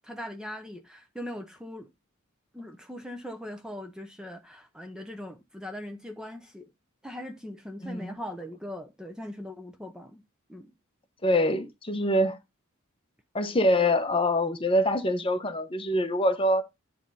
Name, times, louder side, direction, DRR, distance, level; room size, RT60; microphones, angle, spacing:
voice 1, 0.0-1.9 2.5-6.7 7.0-10.2 10.5-10.7, left 1 dB, 5° right, 0.7 m, -40 dB
voice 2, 7.8-8.2 11.2-12.4 13.3-16.6, left 1 dB, 25° left, 0.9 m, -25 dB
9.9 x 3.4 x 5.4 m
head